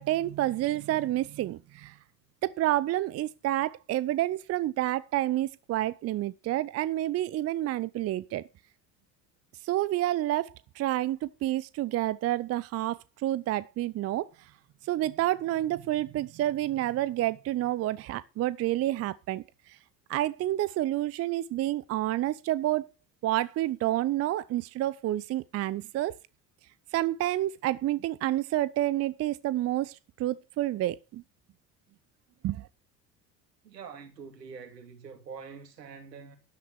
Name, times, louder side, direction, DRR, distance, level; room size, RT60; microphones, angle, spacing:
voice 1, 0.0-1.9 2.4-8.5 9.6-14.3 14.9-19.4 19.7-19.8 20.1-22.9 23.2-26.2 26.9-31.2 32.4-32.7, right 14 dB, 30° right, 0.6 m, -29 dB
voice 2, 33.6-36.4, right 6 dB, 75° right, 2.9 m, -45 dB
12.5 x 11.5 x 4.7 m
figure-of-eight pair, 65°, 49 cm